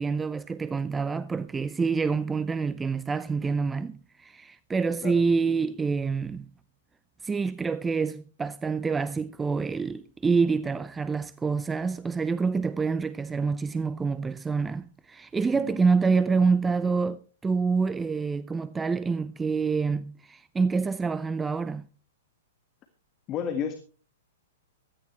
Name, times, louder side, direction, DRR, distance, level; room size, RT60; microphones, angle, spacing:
voice 1, 0.0-6.5 7.2-21.9, right 4 dB, 15° right, 0.5 m, -27 dB
voice 2, 15.5-15.8 23.3-23.7, left 8 dB, 30° left, 1.8 m, -31 dB
16.0 x 13.5 x 3.2 m
hypercardioid pair, 115°, 0 cm